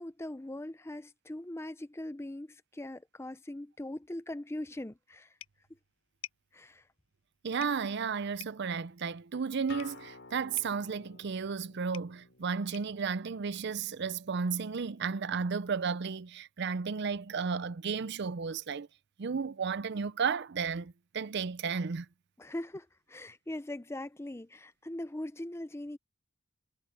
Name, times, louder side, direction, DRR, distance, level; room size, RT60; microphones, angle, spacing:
voice 1, 0.0-5.3 6.5-6.8 22.4-26.0, left 1 dB, 10° left, 0.5 m, -41 dB
sound 1, 5.4-14.1, left 11 dB, 70° left, 6.2 m, -55 dB
voice 2, 7.4-18.9 19.2-22.1, right 5 dB, 50° right, 0.5 m, -33 dB
Acoustic guitar, 9.7-14.9, left 4 dB, 55° left, 4.7 m, -53 dB
head